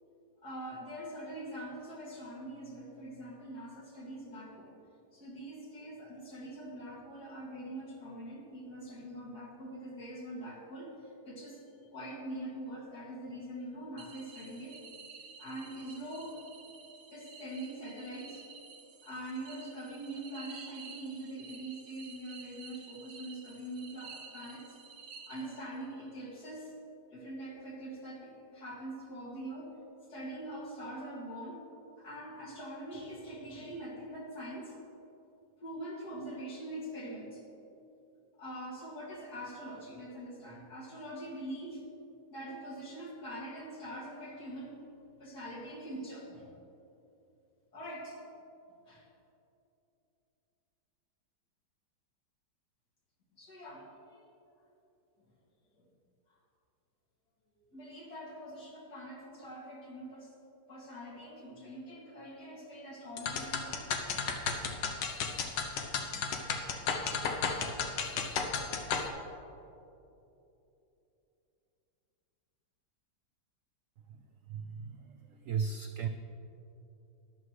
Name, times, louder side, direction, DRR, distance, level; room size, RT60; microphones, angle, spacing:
voice 1, 0.4-4.7 5.1-14.8 15.4-16.4 17.1-18.4 19.0-24.8 25.3-26.7 27.1-29.7 30.1-31.7 32.0-34.8 35.6-37.4 38.4-41.8 42.3-44.8 45.2-46.5 47.7-48.2 48.8-49.1 53.4-54.2 55.8-55.9 57.7-60.3 60.7-63.9, right 1 dB, 60° left, -5 dB, 2.9 m, -43 dB
sound 1, 14.0-25.9, right 5 dB, 55° right, 1.3 m, -51 dB
sound 2, 63.2-69.1, left 5 dB, 85° left, 1.6 m, -33 dB
voice 2, 74.5-76.1, right 6 dB, 75° right, 6 dB, 0.7 m, -36 dB
13.5 x 11.5 x 3.2 m, 2.9 s
omnidirectional pair, 1.9 m